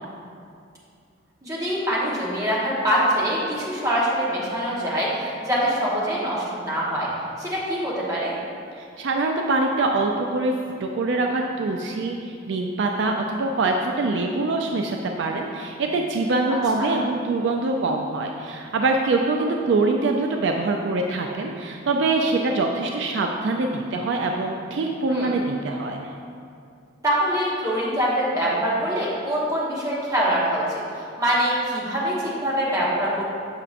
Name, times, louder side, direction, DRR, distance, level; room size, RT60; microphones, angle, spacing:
voice 1, 1.4-7.1 7.4-8.3 16.5-16.9 25.1-25.3 27.0-33.2, equal, 15° right, -7 dB, 1.2 m, -24 dB
voice 2, 8.8-10.5 10.8-26.0, right 3 dB, 65° right, 2 dB, 0.3 m, -24 dB
6.5 x 5.7 x 2.5 m, 2.4 s
head